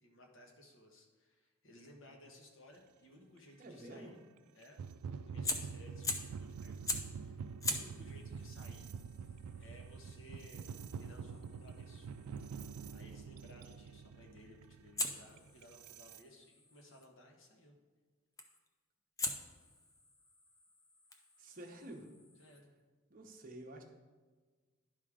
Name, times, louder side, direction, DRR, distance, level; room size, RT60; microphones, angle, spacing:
voice 1, 0.0-4.2 4.5-4.8 5.1-8.9 9.6-10.6 11.0-12.1 12.9-17.8 22.4-22.7, left 1 dB, 55° left, 1 dB, 1.2 m, -59 dB
voice 2, 3.6-4.1 21.4-22.1 22.4-22.6 23.1-23.8, right 1 dB, 40° right, 2 dB, 0.9 m, -50 dB
sound 1, 3.6-3.7 4.6-16.2, right 6 dB, 85° right, 0.3 m, -46 dB
Fire, 5.4-6.4 6.9-7.2 7.6-12.5 15.0-17.1 18.4-18.7 19.2-22.6, left 2 dB, 15° left, 0.4 m, -43 dB
11.0 x 3.7 x 4.8 m, 1.4 s
head